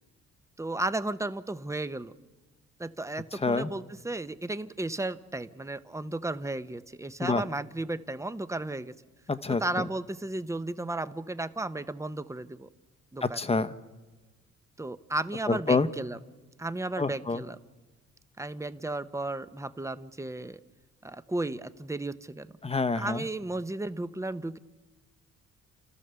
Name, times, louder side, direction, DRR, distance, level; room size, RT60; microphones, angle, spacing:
voice 1, 0.6-2.1 2.8-9.0 9.6-12.7 13.1-13.4 14.8-16.2 16.6-17.6 18.4-20.6 21.0-22.5 23.0-24.6, right 2 dB, 10° right, 13 dB, 0.8 m, -34 dB
voice 2, 3.3-3.7 7.2-7.5 9.3-9.9 13.2-13.7 15.5-15.9 17.0-17.4 22.6-23.2, left 3 dB, 20° left, 12 dB, 1.0 m, -27 dB
30.0 x 13.5 x 6.9 m, 1.3 s
cardioid pair, 90°, 30 cm